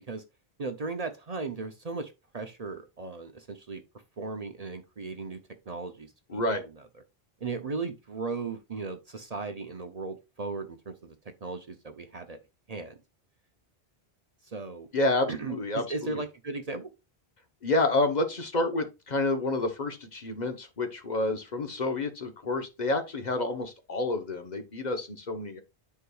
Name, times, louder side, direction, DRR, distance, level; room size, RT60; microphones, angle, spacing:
voice 1, 0.6-3.8 4.2-5.4 5.7-6.6 7.4-11.2 11.4-12.4 12.7-12.9 14.4-14.9 15.3-16.9, right 4 dB, 45° right, 0.7 m, -36 dB
voice 2, 6.3-6.6 14.9-16.2 17.6-25.6, left 2 dB, 45° left, 1.0 m, -29 dB
9.7 x 4.7 x 2.3 m
omnidirectional pair, 1.0 m